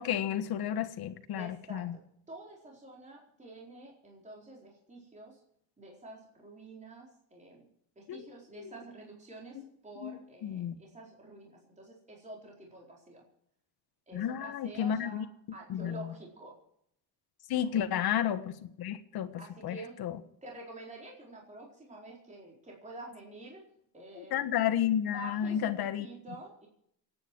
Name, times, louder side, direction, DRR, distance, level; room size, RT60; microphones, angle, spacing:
voice 1, 0.0-2.0 8.1-8.3 8.6-8.7 9.5-9.6 10.0-10.1 10.4-10.7 14.1-15.2 15.7-16.1 17.5-20.2 24.2-26.1, left 10 dB, 60° left, 10 dB, 1.6 m, -32 dB
voice 2, 1.3-1.9 2.3-5.4 5.8-7.7 8.0-13.2 14.1-15.2 15.5-16.5 17.5-17.9 19.4-20.0 20.4-23.6 23.9-24.5 25.1-26.7, right 2 dB, 15° right, -2 dB, 4.3 m, -48 dB
28.0 x 9.7 x 4.7 m, 0.71 s
cardioid pair, 125°, 42 cm